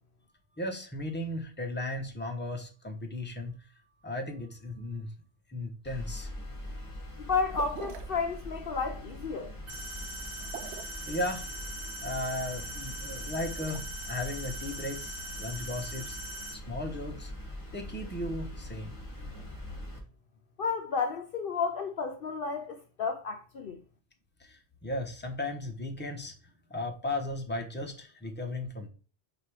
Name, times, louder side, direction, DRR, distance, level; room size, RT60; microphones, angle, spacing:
voice 1, 0.6-3.6 4.0-5.1 5.5-6.3 11.1-11.5 12.0-16.2 16.5-17.3 17.7-19.0 24.4-26.3 26.7-28.9, left 1 dB, 10° left, 0.9 m, -36 dB
sound 1, 5.8-20.0, equal, 25° left, 1.7 m, -42 dB
voice 2, 7.2-9.5 20.6-23.8, left 5 dB, 60° left, 0.7 m, -32 dB
sound 2, 7.5-8.2 10.4-11.0 13.2-13.8, right 7 dB, 75° right, 0.9 m, -43 dB
sound 3, 9.7-16.5, right 1 dB, 35° right, 2.7 m, -41 dB
5.1 x 4.1 x 4.8 m
omnidirectional pair, 1.2 m